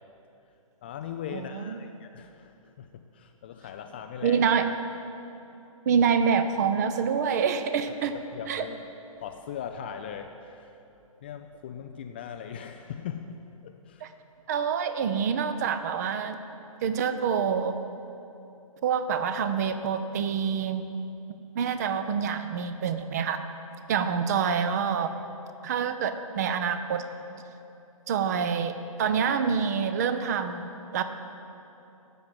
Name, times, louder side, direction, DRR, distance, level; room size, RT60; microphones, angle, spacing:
voice 1, 0.8-4.6 8.0-8.9 9.2-10.8 11.2-13.4 13.6-14.1, left 8 dB, 20° left, 5 dB, 0.3 m, -39 dB
voice 2, 1.3-1.8 4.2-4.7 5.9-8.1 8.5-8.6 14.0-14.1 14.5-16.4 16.8-17.8 18.8-20.8 21.5-23.4 23.9-25.1 25.6-27.0 28.1-28.7 29.0-31.0, right 6 dB, 30° right, 9 dB, 0.7 m, -26 dB
13.0 x 7.8 x 8.9 m, 2.9 s
figure-of-eight pair, 130°, 18 cm